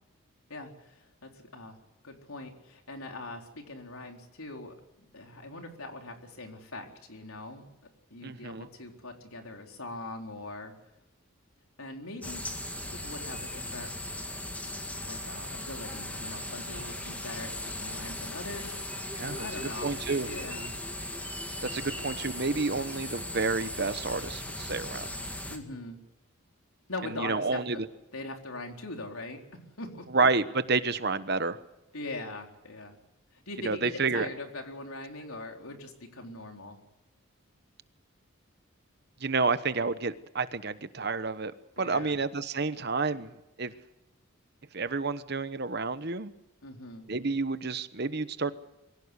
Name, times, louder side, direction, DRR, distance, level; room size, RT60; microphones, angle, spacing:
voice 1, 0.5-1.8 2.0-7.7 8.1-10.7 11.8-12.4 12.9-13.9 15.0-19.9 20.2-20.8 21.6-21.7 25.5-26.0 26.9-27.8 28.1-30.1 31.9-33.0 33.3-36.8 41.8-42.2 46.6-47.1, left 2 dB, 80° left, 3 dB, 4.1 m, -42 dB
voice 2, 8.2-8.7 19.2-19.5 19.8-20.3 21.7-25.1 27.1-27.9 30.1-31.6 33.6-34.3 39.2-41.5 41.8-43.7 44.7-46.3 47.1-48.5, right 4 dB, 50° right, 13 dB, 1.1 m, -29 dB
sound 1, 12.2-25.6, left 1 dB, 5° left, 2.2 m, -38 dB
24.0 x 16.5 x 8.3 m, 0.99 s
head